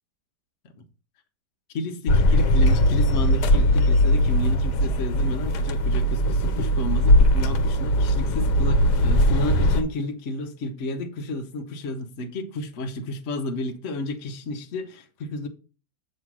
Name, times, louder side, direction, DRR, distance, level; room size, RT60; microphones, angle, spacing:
voice 1, 1.7-15.5, left 1 dB, 50° left, 1.1 m, -31 dB
sound 1, 2.1-9.8, equal, 75° left, 1.3 m, -20 dB
7.5 x 3.2 x 6.0 m
omnidirectional pair, 1.8 m